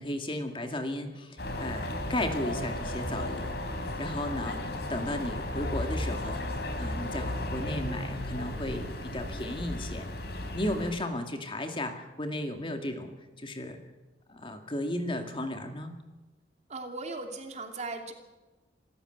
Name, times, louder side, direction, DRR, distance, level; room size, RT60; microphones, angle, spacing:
voice 1, 0.0-6.4 6.8-10.1 10.5-13.1 13.4-13.8 14.3-15.9, left 1 dB, 30° left, 5 dB, 2.3 m, -35 dB
sound 1, 1.4-10.9, left 1 dB, 65° left, 3.7 m, -34 dB
voice 2, 16.7-18.1, right 3 dB, 40° right, 4 dB, 2.8 m, -38 dB
26.5 x 14.0 x 8.0 m, 1.1 s
head